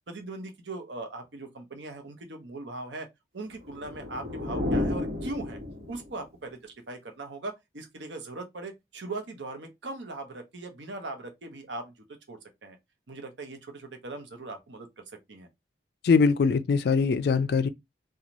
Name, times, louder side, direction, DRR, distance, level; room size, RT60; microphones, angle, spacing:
voice 1, 0.1-3.1 3.3-5.6 5.9-12.8 13.1-14.9 15.3-15.5, right 2 dB, 80° right, 0.8 m, -39 dB
sound 1, 3.5-6.2, left 2 dB, 55° right, 1.2 m, -32 dB
voice 2, 16.0-17.7, left 5 dB, 60° left, 0.3 m, -22 dB
3.0 x 2.3 x 2.5 m
head